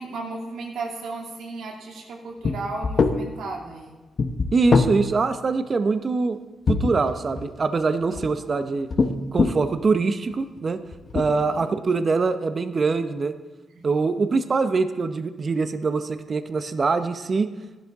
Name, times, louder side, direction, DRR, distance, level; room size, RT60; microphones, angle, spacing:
voice 1, 0.0-4.0 8.1-8.2 8.5-8.6 11.4-11.7 13.7-13.8, right 3 dB, 85° right, 0 dB, 2.6 m, -35 dB
sound 1, 2.4-2.5 2.8-3.2 4.2-4.9 6.7-7.4 8.0-8.3 8.9-9.7 10.4-10.6 10.9-11.2, left 4 dB, 45° left, 1.0 m, -21 dB
voice 2, 4.5-6.4 6.7-8.9 9.3-10.8 11.1-13.3 13.8-17.5, right 4 dB, 40° right, 9 dB, 0.7 m, -23 dB
15.0 x 11.5 x 3.6 m, 1.2 s
cardioid pair, 105°, 0 cm